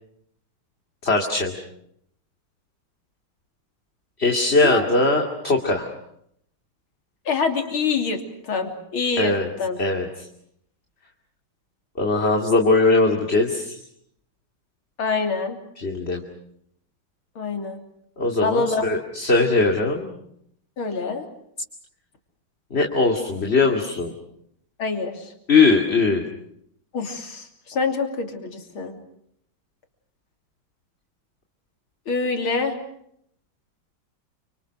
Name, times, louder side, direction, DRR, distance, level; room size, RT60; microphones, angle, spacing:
voice 1, 1.0-1.5 4.2-5.9 9.2-9.5 9.8-10.3 12.0-13.8 15.8-16.2 18.2-20.1 22.7-24.1 25.5-26.2, left 3 dB, 30° left, 1 dB, 2.7 m, -20 dB
voice 2, 7.3-9.8 15.0-15.6 17.4-17.8 18.4-18.8 20.8-21.2 24.8-25.3 26.9-29.0 32.1-32.8, left 4 dB, 85° left, 4 dB, 3.9 m, -26 dB
29.0 x 26.5 x 6.5 m, 0.72 s
omnidirectional pair, 2.2 m